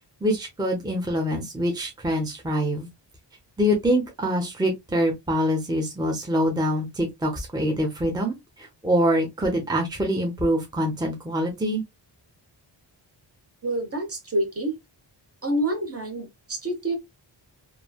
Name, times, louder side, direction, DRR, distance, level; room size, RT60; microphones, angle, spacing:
voice 1, 0.2-2.9 3.6-8.4 8.8-11.8, equal, 10° right, 0.7 m, -24 dB
voice 2, 13.6-14.8 15.4-17.0, right 1 dB, 30° right, 1.0 m, -27 dB
3.1 x 2.2 x 2.2 m
wide cardioid pair, 90°, 45 cm